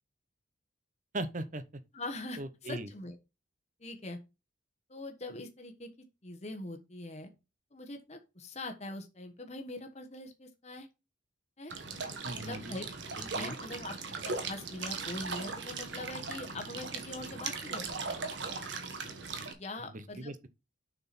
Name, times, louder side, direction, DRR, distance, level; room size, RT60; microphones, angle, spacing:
voice 1, 1.1-1.8 2.4-2.9 12.2-12.8 13.3-13.6 19.8-20.5, right 2 dB, 45° right, 0.9 m, -39 dB
voice 2, 1.9-3.2 3.8-4.2 4.9-5.9 6.2-7.3 7.7-10.9 11.6-11.7 12.3-12.9 13.2-18.3 19.5-20.3, left 2 dB, 35° left, 1.1 m, -43 dB
sound 1, 11.7-19.5, right 4 dB, 65° right, 1.4 m, -39 dB
7.2 x 5.9 x 4.2 m
head